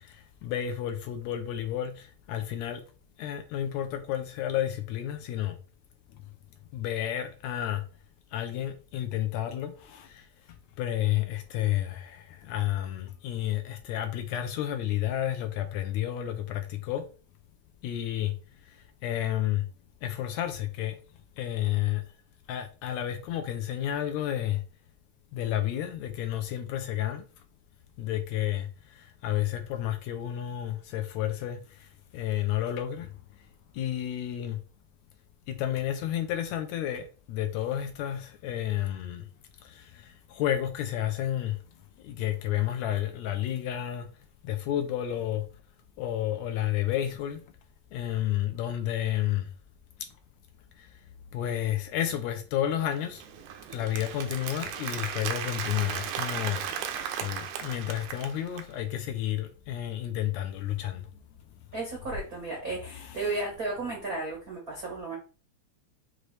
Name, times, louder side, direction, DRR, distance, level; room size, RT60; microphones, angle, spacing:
voice 1, 0.0-2.8 3.2-5.6 6.7-7.8 8.3-10.3 10.8-17.1 17.8-18.3 19.0-19.7 20.0-21.0 21.4-22.0 22.5-24.6 25.3-27.3 28.0-33.1 33.7-34.6 35.5-39.3 39.6-41.6 42.0-44.1 44.4-45.5 46.0-47.4 47.9-49.5 50.8-50.9 51.3-53.2 53.7-56.6 57.2-61.1 62.9-63.4, left 12 dB, 80° left, 1.7 m, -31 dB
Applause, 52.9-58.7, right 8 dB, 85° right, 2.0 m, -36 dB
voice 2, 61.7-65.1, right 3 dB, 65° right, 0.8 m, -34 dB
6.1 x 2.6 x 3.2 m
omnidirectional pair, 3.4 m